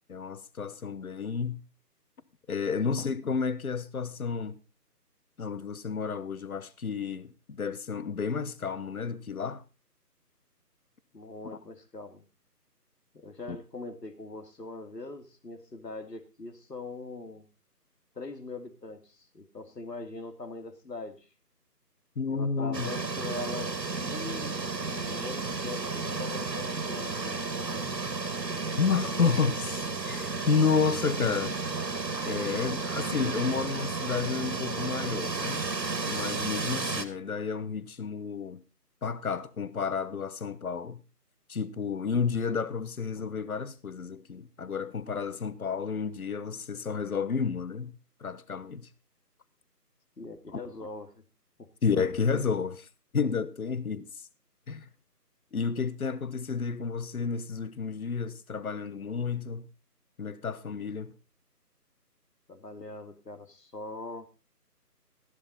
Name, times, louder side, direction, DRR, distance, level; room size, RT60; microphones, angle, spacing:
voice 1, 0.1-1.6 2.5-4.6 5.4-9.6 11.4-11.6 13.5-13.6 22.2-22.9 28.8-31.6 32.3-35.6 36.1-38.6 39.0-41.0 41.5-48.9 51.8-52.9 53.1-54.1 54.7-54.9 55.5-59.7 60.2-61.1, left 5 dB, 60° left, 1.1 m, -31 dB
voice 2, 11.1-12.2 13.1-17.5 18.1-21.3 22.3-27.9 50.2-51.2 51.6-51.7 62.5-64.3, left 3 dB, 80° left, 2.7 m, -42 dB
sound 1, 22.7-37.0, right 3 dB, 90° right, 2.2 m, -33 dB
14.5 x 11.0 x 4.0 m
figure-of-eight pair, 165°, 48 cm